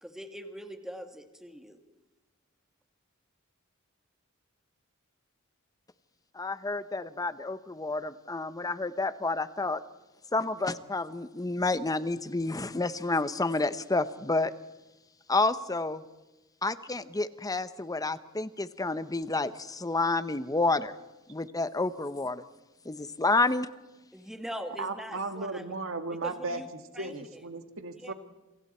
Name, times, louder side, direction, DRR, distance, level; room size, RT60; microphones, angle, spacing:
voice 1, 0.0-1.8 24.1-25.7 26.2-26.7 26.9-27.4 28.0-28.1, equal, ahead, 5 dB, 1.9 m, -42 dB
voice 2, 6.3-9.8 10.3-14.5 15.3-16.0 16.6-20.9 21.3-22.4 22.8-23.7, left 3 dB, 15° left, 13 dB, 0.8 m, -29 dB
voice 3, 24.8-26.6 27.0-28.1, right 3 dB, 65° right, 7 dB, 2.0 m, -35 dB
27.5 x 25.0 x 4.4 m, 1.1 s
head